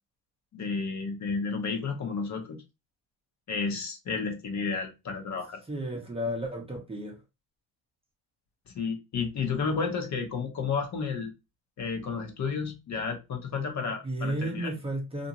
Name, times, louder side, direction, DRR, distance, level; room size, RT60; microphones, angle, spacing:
voice 1, 0.5-2.6 3.5-5.6 8.7-11.3 11.8-14.7, left 5 dB, 40° left, 0.9 m, -32 dB
voice 2, 5.7-7.2 14.0-15.3, right 1 dB, 15° right, 0.7 m, -33 dB
2.6 x 2.5 x 2.9 m
cardioid pair, 105°, 42 cm